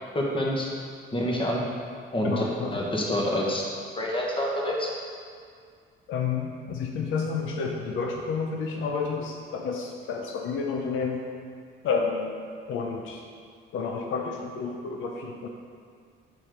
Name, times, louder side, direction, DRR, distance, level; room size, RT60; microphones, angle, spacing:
voice 1, 0.1-0.7 1.1-1.6 2.1-2.4 2.7-3.7 4.0-4.9, left 1 dB, 25° left, -2 dB, 1.4 m, -27 dB
voice 2, 2.2-2.8 6.1-11.2 11.8-12.3 12.7-13.2 13.7-15.5, left 5 dB, 80° left, 1 dB, 0.6 m, -30 dB
6.1 x 4.3 x 5.0 m, 2.2 s
cardioid pair, 90°, 20 cm